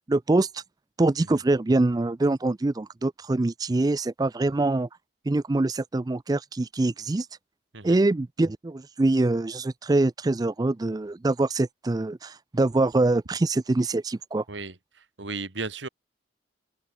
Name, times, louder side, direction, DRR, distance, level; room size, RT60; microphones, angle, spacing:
voice 1, 0.1-0.6 1.0-4.9 5.3-7.3 7.8-14.4, right 2 dB, 20° right, 0.4 m, -24 dB
voice 2, 14.5-15.9, right 3 dB, 90° right, 2.1 m, -35 dB
open air
head